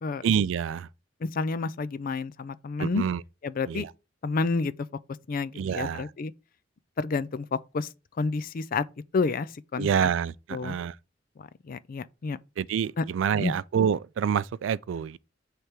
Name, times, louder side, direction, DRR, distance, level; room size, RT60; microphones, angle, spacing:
voice 1, 0.2-0.9 2.8-3.2 3.7-3.9 5.6-6.1 9.8-11.0 12.6-15.2, right 7 dB, 80° right, 0.3 m, -27 dB
voice 2, 1.2-3.0 3.4-3.9 4.2-4.7 5.3-6.3 7.0-7.9 8.2-8.8 9.1-10.1 10.5-10.8 11.4-12.4 13.0-13.1 13.4-13.5, left 4 dB, 50° left, 0.4 m, -29 dB
8.0 x 3.4 x 4.4 m
head